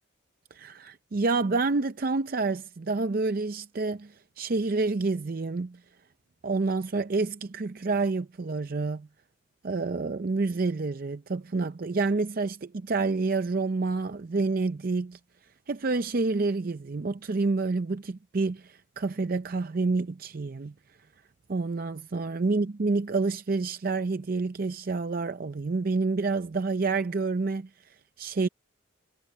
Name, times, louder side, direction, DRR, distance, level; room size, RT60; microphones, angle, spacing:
voice 1, 0.5-5.8 6.4-9.1 9.6-15.2 15.7-20.7 21.5-27.7 28.2-28.5, right 3 dB, 45° right, 0.5 m, -28 dB
head